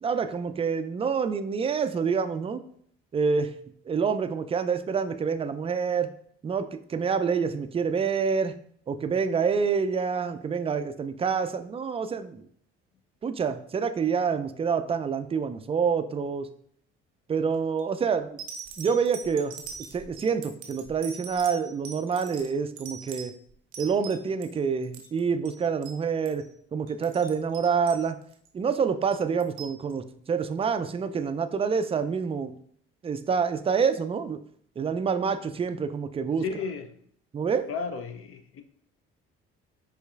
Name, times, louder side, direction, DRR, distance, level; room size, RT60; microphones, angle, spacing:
voice 1, 0.0-2.7 3.1-3.5 3.8-6.1 6.4-8.5 8.9-12.5 13.2-16.5 17.3-18.4 18.8-19.5 19.9-23.3 23.8-26.4 26.7-28.2 28.5-32.5 33.0-34.4 34.8-36.4 37.3-37.7, right 6 dB, 20° right, 10 dB, 0.3 m, -27 dB
sound 1, 17.5-17.8 18.4-24.5 24.8-25.2 25.5-25.6 25.8-26.0 26.3-26.5 26.9-28.5 29.1-29.8 30.6-30.7, right 6 dB, 75° right, 0.7 m, -42 dB
voice 2, 36.4-36.9 37.7-38.6, left 5 dB, 45° left, 8 dB, 0.5 m, -33 dB
5.4 x 3.1 x 2.4 m, 0.64 s
hypercardioid pair, 50°, 30 cm